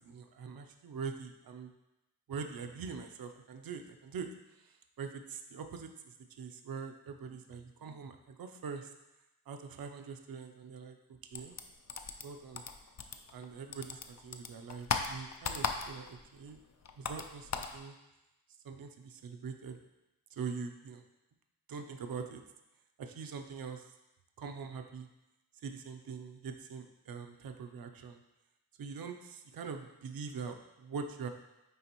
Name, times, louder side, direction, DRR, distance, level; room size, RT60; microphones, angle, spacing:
voice 1, 0.0-1.7 2.3-8.9 9.5-11.5 12.2-12.6 13.3-16.6 17.0-17.9 18.6-19.8 20.3-21.0 21.7-22.4 23.0-23.9 24.4-25.1 25.6-28.2 28.8-31.3, right 5 dB, 60° right, 6 dB, 0.6 m, -43 dB
sound 1, 11.3-13.5 13.7-16.2 16.5-17.8, left 5 dB, 45° left, 0.4 m, -37 dB
9.4 x 3.4 x 2.9 m, 0.96 s
wide cardioid pair, 130°, 40 cm